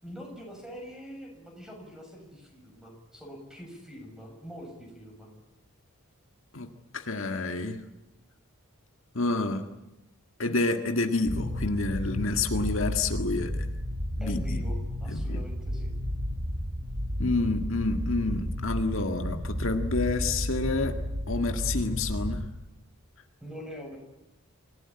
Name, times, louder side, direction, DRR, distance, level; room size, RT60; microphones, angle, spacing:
voice 1, 0.0-5.3 14.2-14.8 15.0-15.9 23.4-24.0, equal, 5° right, 2 dB, 6.6 m, -44 dB
voice 2, 6.9-7.8 9.1-9.6 10.4-13.7 14.2-14.6 15.1-15.4 17.2-21.0 21.3-22.4, left 3 dB, 65° left, 5 dB, 1.8 m, -29 dB
sound 1, 11.3-22.5, equal, 50° right, 2.5 m, -32 dB
26.5 x 16.5 x 9.8 m, 0.95 s
head